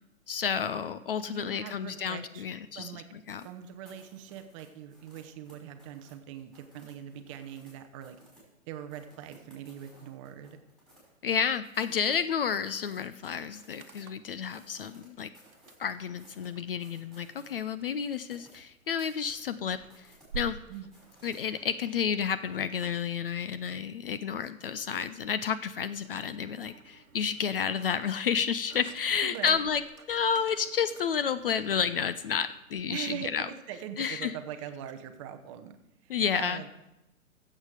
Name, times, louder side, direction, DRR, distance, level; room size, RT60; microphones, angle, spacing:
voice 1, 0.3-2.9 3.3-3.4 11.2-15.3 15.8-19.8 20.3-20.6 21.2-29.8 30.1-33.5 34.0-34.3 36.1-36.7, left 7 dB, 45° left, 13 dB, 0.5 m, -30 dB
voice 2, 1.3-2.5 2.7-3.1 3.4-8.2 8.7-10.6 20.7-20.9 29.2-29.6 32.9-35.8 36.0-36.7, right 10 dB, 25° right, 8 dB, 0.7 m, -42 dB
sound 1, 3.3-7.7 8.0-8.5 8.9-11.3 11.6-14.0 14.3-21.4, equal, ahead, 5.2 m, -59 dB
sound 2, 12.8-12.9 13.1-14.4 15.4-32.6, right 5 dB, 80° right, 1.1 m, -50 dB
15.0 x 7.5 x 4.8 m, 0.91 s
figure-of-eight pair, 125°, 42 cm